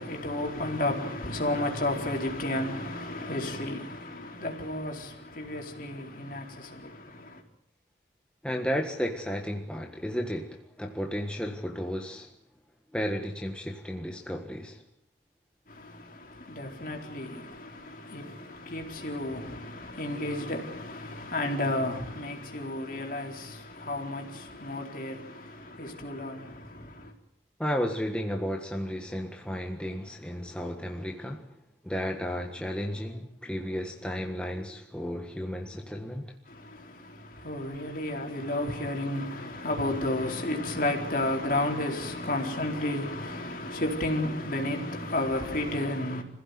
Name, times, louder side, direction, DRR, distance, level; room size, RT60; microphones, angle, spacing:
voice 1, 0.0-7.4 15.7-27.1 36.5-46.2, left 1 dB, 50° left, 4.2 m, -32 dB
voice 2, 8.4-12.3 12.9-14.8 27.6-31.5 31.8-36.3, equal, 5° left, 1.6 m, -33 dB
26.5 x 16.0 x 9.5 m
head